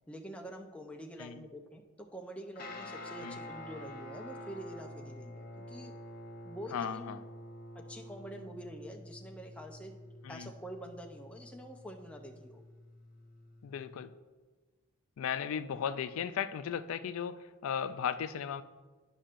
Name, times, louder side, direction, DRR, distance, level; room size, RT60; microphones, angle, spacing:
voice 1, 0.1-5.9 6.4-7.2 7.7-9.9 10.3-12.6, right 1 dB, 5° left, 2 dB, 0.5 m, -46 dB
Guitar, 2.6-14.0, left 1 dB, 45° left, 0.7 m, -48 dB
voice 2, 6.7-7.2 10.2-10.5 13.6-14.1 15.2-18.6, left 8 dB, 80° left, 12 dB, 0.3 m, -36 dB
11.5 x 5.4 x 2.5 m, 1.3 s
head